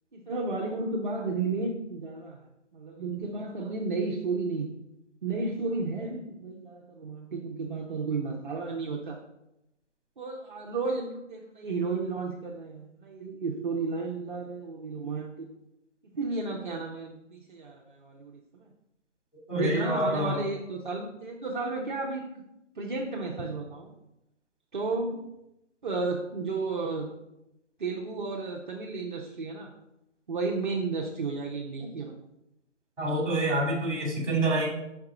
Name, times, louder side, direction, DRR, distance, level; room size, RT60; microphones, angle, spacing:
voice 1, 0.1-2.4 2.7-4.7 5.2-9.2 10.2-15.3 16.1-18.7 19.5-22.3 22.8-23.9 24.7-25.3 25.8-27.1 27.8-29.7 30.3-32.2, right 3 dB, 40° right, -2 dB, 0.6 m, -33 dB
voice 2, 19.5-20.4 33.0-34.7, right 1 dB, 5° right, -10 dB, 1.7 m, -27 dB
5.8 x 4.6 x 3.6 m, 0.89 s
hypercardioid pair, 165°, 37 cm